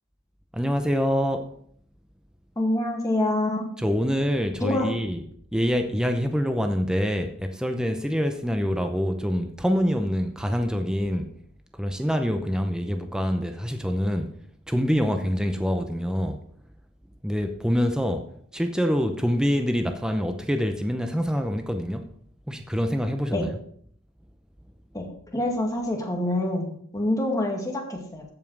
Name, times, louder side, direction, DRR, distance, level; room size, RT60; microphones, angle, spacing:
voice 1, 0.5-1.5 3.8-5.2 5.5-11.3 11.7-14.3 14.7-16.4 17.2-22.1 22.5-23.5, equal, 5° right, 0.6 m, -25 dB
voice 2, 2.6-3.7 4.6-4.9 23.3-23.5 24.9-25.1 25.3-28.2, left 1 dB, 15° left, 2.0 m, -26 dB
14.5 x 5.5 x 4.7 m
head